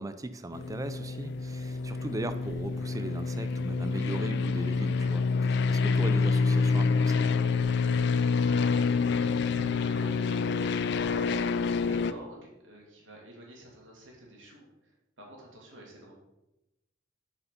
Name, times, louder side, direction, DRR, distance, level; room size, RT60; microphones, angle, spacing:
voice 1, 0.0-7.3, right 2 dB, 15° right, 11 dB, 0.4 m, -38 dB
sound 1, 0.5-12.1, left 4 dB, 60° left, 0.4 m, -27 dB
voice 2, 8.1-14.9 15.2-16.1, right 1 dB, 75° right, -2 dB, 2.2 m, -49 dB
6.7 x 4.9 x 5.2 m, 0.94 s
head